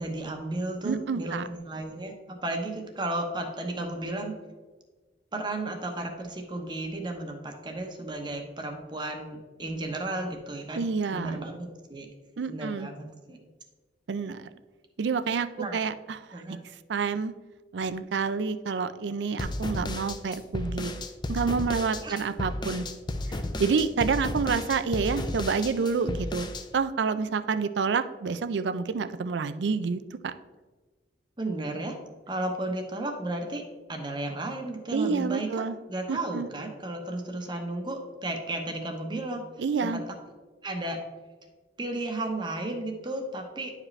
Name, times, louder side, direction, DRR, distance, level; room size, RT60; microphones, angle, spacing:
voice 1, 0.0-4.4 5.3-10.8 11.1-12.1 12.5-13.4 15.6-15.8 16.3-16.6 22.0-22.2 31.4-32.0 32.3-33.6 33.9-35.6 35.9-39.4 39.9-40.0 40.6-41.0 41.8-43.7, right 2 dB, 25° right, 3 dB, 0.9 m, -33 dB
voice 2, 0.8-1.5 10.7-11.4 12.4-12.9 14.1-14.5 15.0-16.2 16.5-16.6 16.9-17.3 17.7-20.9 21.3-22.9 23.3-30.3 34.9-35.8 36.1-36.5 39.6-40.0, right 5 dB, 85° right, 12 dB, 0.4 m, -28 dB
sound 1, 19.4-26.6, left 1 dB, 25° left, 0.5 m, -33 dB
9.9 x 4.9 x 3.2 m, 1.3 s
head